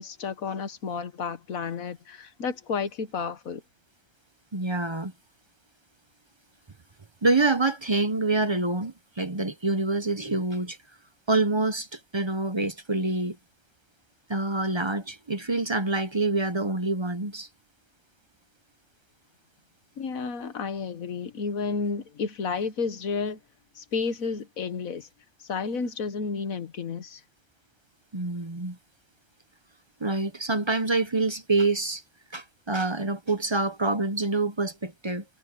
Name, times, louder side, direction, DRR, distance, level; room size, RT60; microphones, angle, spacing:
voice 1, 0.0-3.6 20.0-23.4 23.8-25.1 25.5-27.2, left 5 dB, 85° left, 1.7 m, -31 dB
voice 2, 4.5-5.1 7.2-10.8 11.3-13.4 14.3-17.5 28.1-28.8 30.0-32.0 32.3-35.2, right 3 dB, 25° right, 0.8 m, -26 dB
omnidirectional pair, 1.4 m